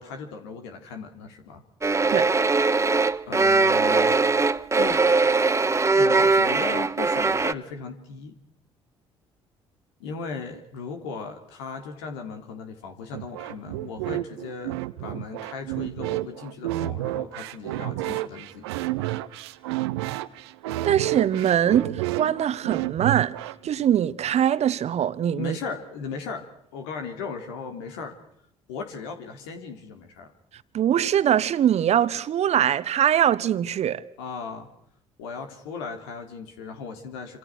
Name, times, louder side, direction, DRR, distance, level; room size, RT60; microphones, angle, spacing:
voice 1, 0.0-1.6 3.3-4.2 4.7-5.0 5.8-8.3 10.0-18.9 25.4-26.4 26.7-28.1 28.7-30.3 34.2-34.7 35.2-37.4, left 5 dB, 80° left, 3.6 m, -37 dB
sound 1, 1.8-7.5, right 3 dB, 20° right, 1.1 m, -21 dB
sound 2, 13.1-23.7, right 16 dB, 80° right, 1.0 m, -30 dB
voice 2, 20.8-23.4 23.6-25.6 30.7-34.0, right 10 dB, 55° right, 1.3 m, -22 dB
27.5 x 27.0 x 6.3 m
hypercardioid pair, 55°, 13 cm